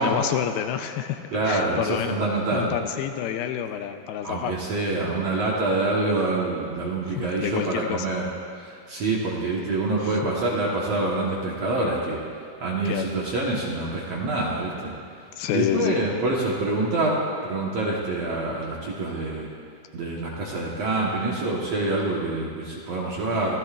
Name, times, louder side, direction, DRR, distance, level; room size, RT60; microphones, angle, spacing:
voice 1, 0.0-4.5 7.2-8.1 10.0-10.2 12.9-13.1 15.4-16.0, left 10 dB, 80° left, 7 dB, 2.4 m, -28 dB
voice 2, 1.3-2.7 4.2-8.2 8.6-12.2 12.6-14.9 15.5-19.5 19.9-23.6, right 2 dB, 60° right, -4 dB, 1.8 m, -26 dB
26.0 x 15.0 x 2.5 m, 2.3 s
omnidirectional pair, 4.4 m